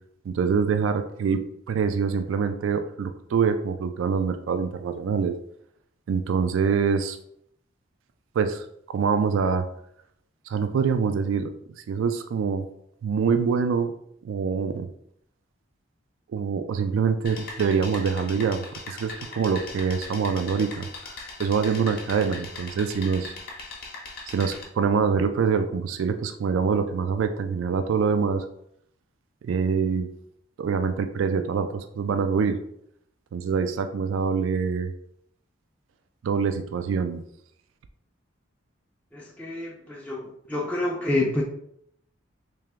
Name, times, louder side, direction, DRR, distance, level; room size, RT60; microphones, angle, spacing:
voice 1, 0.3-1.4 1.7-5.4 6.1-7.2 8.4-9.6 10.5-11.5 11.9-12.7 13.0-13.9 14.2-14.9 16.3-20.9 21.4-23.3 24.3-28.4 29.4-30.1 30.6-32.6 33.3-34.9 36.2-37.2, right 6 dB, 75° right, 8 dB, 0.3 m, -25 dB
sound 1, 17.2-24.6, left 3 dB, 50° left, 0.7 m, -40 dB
voice 2, 39.1-41.4, left 2 dB, 5° left, -4 dB, 0.4 m, -28 dB
3.4 x 2.9 x 3.4 m, 0.71 s
head